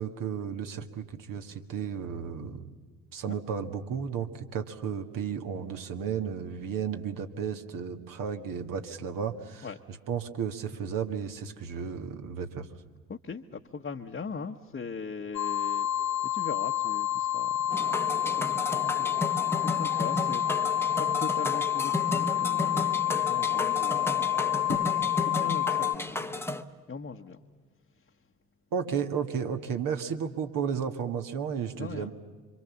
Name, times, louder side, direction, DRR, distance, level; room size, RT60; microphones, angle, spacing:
voice 1, 0.0-2.7 3.1-12.7 28.7-32.1, right 7 dB, 50° right, 6 dB, 1.8 m, -33 dB
voice 2, 13.1-16.0 16.3-26.4 26.9-27.4 31.7-32.1, left 5 dB, 25° left, 1 dB, 1.3 m, -40 dB
sound 1, 15.3-26.0, left 12 dB, 40° left, 0.8 m, -28 dB
sound 2, 17.7-26.6, left 2 dB, 5° left, 1.2 m, -33 dB
27.5 x 25.0 x 7.2 m, 1.5 s
figure-of-eight pair, 55°, 43 cm